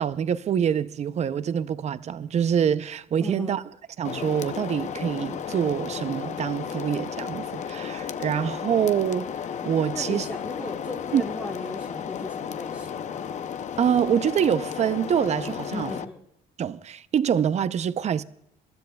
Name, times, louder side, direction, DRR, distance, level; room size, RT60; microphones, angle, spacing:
voice 1, 0.0-3.6 4.0-9.3 9.6-10.2 11.1-11.2 13.8-15.9 16.6-18.2, right 8 dB, 40° right, 0.6 m, -25 dB
voice 2, 3.2-3.6 9.9-13.3 15.7-16.2, left 2 dB, 15° left, 1.4 m, -37 dB
sound 1, 4.0-16.1, left 8 dB, 45° left, 0.6 m, -34 dB
27.0 x 13.0 x 2.3 m
cardioid pair, 110°, 17 cm